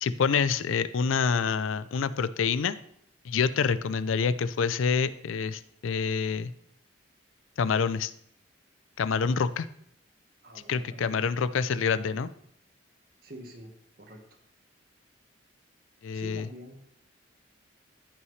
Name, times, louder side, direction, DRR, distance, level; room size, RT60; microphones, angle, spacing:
voice 1, 0.0-2.8 3.2-6.5 7.6-8.1 9.0-9.7 10.7-12.3 16.0-16.5, left 6 dB, 85° left, 14 dB, 0.4 m, -27 dB
voice 2, 10.4-11.3 13.2-13.7 14.0-14.2 16.1-16.8, equal, 50° right, 3 dB, 1.4 m, -46 dB
14.5 x 5.7 x 3.2 m, 0.71 s
head